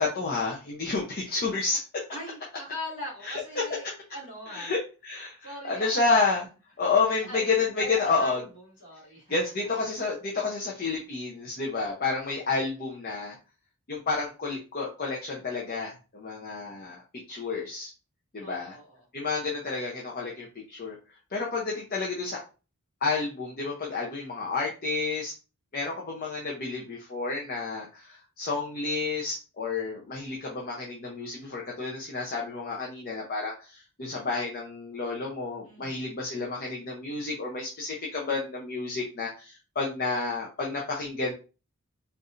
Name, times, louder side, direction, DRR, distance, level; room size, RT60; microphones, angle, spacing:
voice 1, 0.0-2.0 3.2-3.6 4.5-6.5 6.8-8.4 9.3-13.4 13.9-17.9 18.3-18.7 19.1-21.0 21.3-22.4 23.0-25.3 25.7-41.3, left 4 dB, 45° left, -3 dB, 0.7 m, -30 dB
voice 2, 2.1-3.8 4.1-4.7 5.4-6.2 7.3-9.3 18.4-19.0 35.7-36.1, left 1 dB, 60° left, -4 dB, 2.0 m, -41 dB
4.6 x 2.5 x 2.5 m, 0.33 s
head